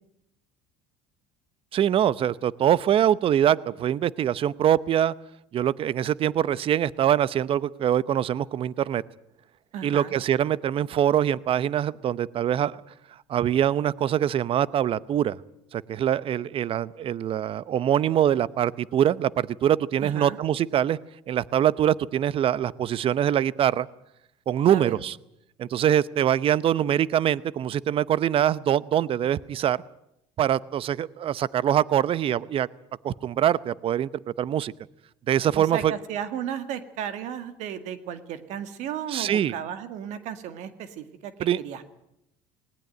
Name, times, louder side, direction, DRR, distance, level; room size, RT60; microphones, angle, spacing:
voice 1, 1.7-5.1 5.5-9.0 9.8-12.8 13.3-15.4 15.7-21.0 21.3-23.9 24.5-25.1 25.6-29.8 30.4-32.7 33.0-34.1 34.4-34.7 35.3-35.9 39.1-39.5 41.4-41.6, right 10 dB, 45° right, 19 dB, 0.8 m, -23 dB
voice 2, 9.7-10.2 20.0-20.4 24.6-25.0 35.6-41.8, right 9 dB, 65° right, 10 dB, 1.9 m, -34 dB
19.5 x 18.5 x 9.1 m, 0.80 s
supercardioid pair, 85°, 13 cm